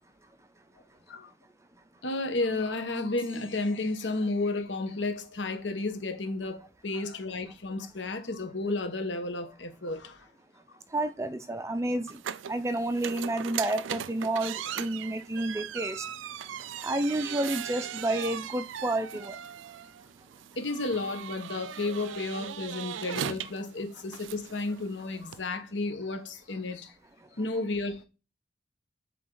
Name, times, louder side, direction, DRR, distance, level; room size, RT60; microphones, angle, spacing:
voice 1, 2.0-10.3 20.6-26.9 27.3-28.0, left 2 dB, 75° left, 1.2 m, -32 dB
sound 1, 3.2-4.7, left 2 dB, 10° left, 3.5 m, -56 dB
voice 2, 10.9-12.1 12.5-16.0 16.8-19.4, right 1 dB, 15° right, 0.5 m, -30 dB
sound 2, 12.1-25.4, right 9 dB, 85° right, 0.4 m, -39 dB
7.6 x 3.9 x 3.9 m
head